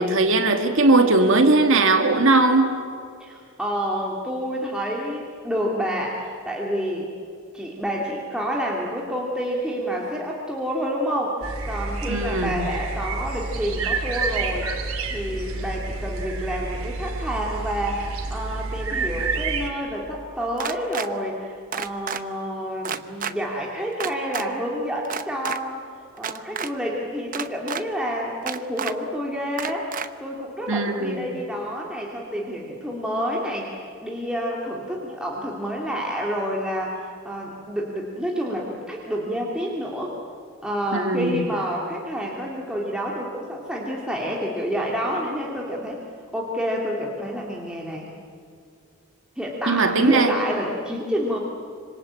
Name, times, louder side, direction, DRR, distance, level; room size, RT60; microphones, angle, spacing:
voice 1, 0.0-2.7 12.1-12.6 30.7-31.3 40.9-41.3 49.7-50.3, right 2 dB, 60° right, 6 dB, 2.3 m, -19 dB
voice 2, 3.2-7.1 7.5-14.7 15.1-25.9 26.2-40.2 40.6-46.0 46.3-48.1 49.4-51.4, equal, 5° right, -3 dB, 2.6 m, -29 dB
sound 1, 11.4-19.7, right 3 dB, 75° right, 3.1 m, -29 dB
sound 2, 20.6-21.1 21.7-22.2 22.8-23.3 24.0-24.4 25.0-25.6 26.2-26.7 27.3-27.8 28.5-28.9 29.6-30.1, right 7 dB, 40° right, 0.9 m, -29 dB
26.0 x 26.0 x 8.8 m, 2.4 s
head